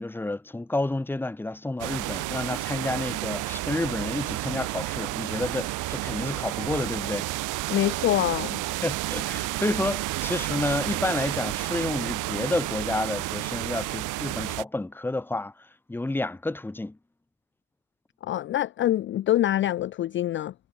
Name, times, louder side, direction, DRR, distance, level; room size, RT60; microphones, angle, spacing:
voice 1, 0.0-7.3 8.8-17.0, left 2 dB, 5° left, 0.9 m, -30 dB
sound 1, 1.8-14.6, right 19 dB, 70° right, 0.6 m, -31 dB
voice 2, 7.7-8.6 18.2-20.5, left 13 dB, 40° left, 0.4 m, -25 dB
cardioid pair, 135°, 32 cm